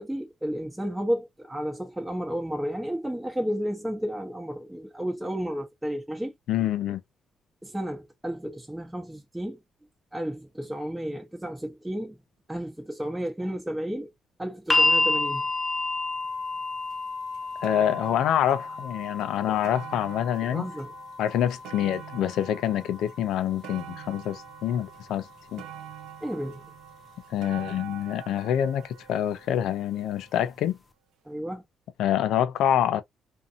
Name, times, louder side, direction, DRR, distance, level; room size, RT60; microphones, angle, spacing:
voice 1, 0.0-6.3 7.6-9.6 10.1-12.2 12.5-14.1 14.4-15.4 20.5-20.9 26.2-26.6 31.2-31.6, equal, 5° right, 0.9 m, -32 dB
voice 2, 6.5-7.0 17.6-20.7 21.2-25.6 27.3-30.8 32.0-33.0, left 10 dB, 80° left, 0.5 m, -26 dB
sound 1, 14.7-26.8 27.9-28.0, left 2 dB, 20° left, 0.4 m, -31 dB
sound 2, 16.9-17.0 17.3-30.5 31.3-31.4, right 10 dB, 90° right, 0.6 m, -46 dB
2.6 x 2.6 x 2.4 m
cardioid pair, 90°, 0 cm